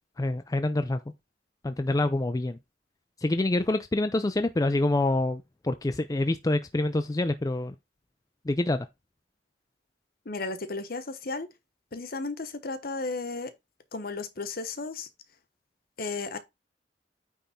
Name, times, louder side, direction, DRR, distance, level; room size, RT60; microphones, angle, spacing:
voice 1, 0.2-1.0 1.6-2.6 3.2-7.7 8.4-8.9, left 2 dB, 20° left, 0.4 m, -26 dB
voice 2, 10.2-11.5 11.9-13.5 13.9-15.1 16.0-16.4, left 3 dB, 55° left, 1.0 m, -34 dB
9.1 x 3.6 x 4.2 m
head